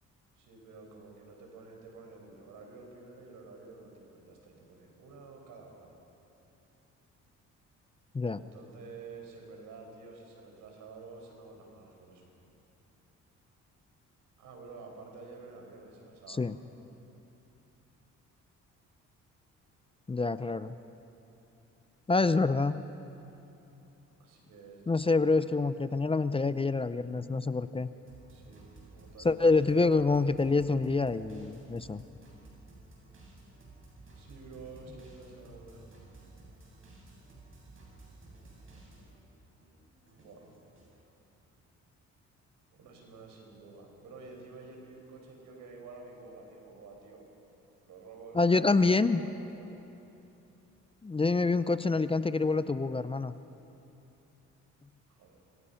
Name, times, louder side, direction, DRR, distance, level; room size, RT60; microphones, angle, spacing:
voice 1, 0.4-5.9 8.3-12.3 14.4-16.5 24.2-25.3 28.3-30.7 34.1-36.0 40.1-40.4 40.9-41.0 42.7-47.3 47.9-49.7 50.0-50.1 55.1-55.4, right 3 dB, 85° right, 2 dB, 5.5 m, -50 dB
voice 2, 20.1-20.7 22.1-22.8 24.9-27.9 29.2-32.0 48.3-49.2 51.0-53.3, left 3 dB, 20° left, 13 dB, 0.6 m, -26 dB
sound 1, 28.1-39.3 39.6-41.0, right 2 dB, 45° right, 7.5 m, -54 dB
26.0 x 23.0 x 5.8 m, 2.9 s
cardioid pair, 90°, 30 cm